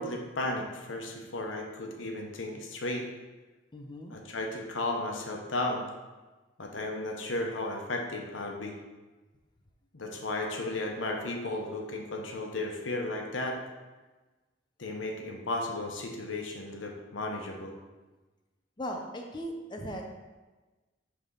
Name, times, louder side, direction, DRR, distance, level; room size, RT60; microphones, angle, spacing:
voice 1, 0.0-3.1 4.1-5.8 6.6-8.7 9.9-13.6 14.8-17.8, left 2 dB, 85° left, 1 dB, 0.9 m, -34 dB
voice 2, 3.7-4.2 18.8-20.0, equal, 25° left, 1 dB, 0.6 m, -38 dB
6.1 x 3.5 x 5.5 m, 1.2 s
head